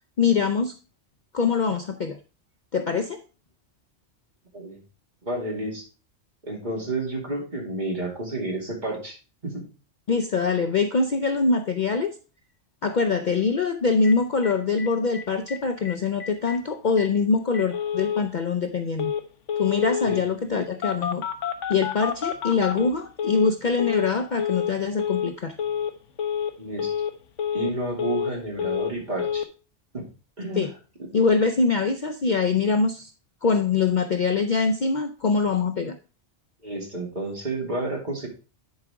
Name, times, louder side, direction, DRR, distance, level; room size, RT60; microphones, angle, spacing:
voice 1, 0.2-0.7 1.3-2.2 2.7-3.2 10.1-12.1 12.8-19.1 19.6-21.2 21.7-25.6 30.6-30.7 31.1-33.1 33.4-36.0, left 4 dB, 50° left, 7 dB, 0.6 m, -23 dB
voice 2, 5.2-5.9 6.4-9.2 9.4-9.6 20.0-20.2 26.6-26.9 27.5-29.5 29.9-30.0 30.4-30.7 36.6-38.3, right 2 dB, 40° right, -1 dB, 2.7 m, -30 dB
Telephone, 14.0-14.1 14.4-14.5 14.8-14.9 15.1-15.6 15.9-16.0 16.2-16.6 17.0-17.1 17.5-18.2 19.0-19.2 19.5-20.2 20.8-23.5 23.8-24.1 24.4-24.7 25.0-25.3 25.6-25.9 26.2-26.5 26.8-27.1 27.4-28.3 28.6-28.9 29.2-29.4, left 8 dB, 85° left, 1.2 m, -28 dB
10.5 x 4.9 x 3.5 m, 0.33 s
omnidirectional pair, 1.2 m